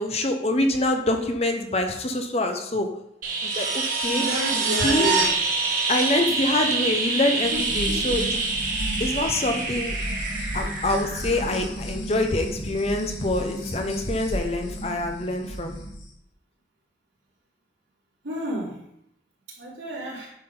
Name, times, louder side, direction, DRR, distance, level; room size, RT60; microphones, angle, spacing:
voice 1, 0.0-2.9 3.4-4.2 4.8-5.1 5.9-8.4 9.0-9.9 10.5-15.8, left 1 dB, 35° left, 4 dB, 0.9 m, -25 dB
sound 1, 3.2-11.9 14.2-14.3, right 4 dB, 45° right, 1.7 m, -26 dB
voice 2, 4.0-5.3 7.5-7.6 7.9-8.0 18.2-18.8 19.6-20.3, right 1 dB, 85° right, -6 dB, 3.4 m, -30 dB
sound 2, 7.4-16.0, equal, 80° left, 2.2 m, -33 dB
10.0 x 6.0 x 3.9 m, 0.75 s
head